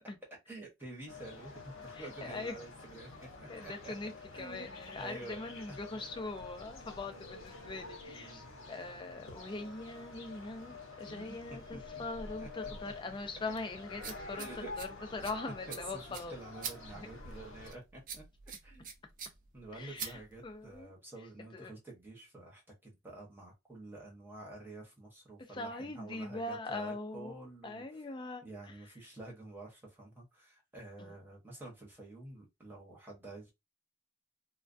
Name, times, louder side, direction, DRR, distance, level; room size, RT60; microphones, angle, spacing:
voice 1, 0.5-3.3 3.6-3.9 4.3-5.4 5.7-6.1 8.1-8.4 11.1-12.0 12.4-12.7 14.3-14.7 15.7-18.2 18.6-18.9 19.5-28.0 28.4-33.5, right 2 dB, 10° right, 0.8 m, -49 dB
sound 1, 1.1-17.7, left 3 dB, 85° left, 0.8 m, -48 dB
voice 2, 2.0-2.6 3.5-4.1 4.4-14.5 14.8-16.3 16.9-17.1 19.7-20.9 21.5-21.7 25.5-27.3 27.6-28.5 31.0-31.1, left 2 dB, 25° left, 0.4 m, -42 dB
sound 2, 12.4-20.8, right 7 dB, 40° right, 0.4 m, -47 dB
2.2 x 2.2 x 2.5 m
head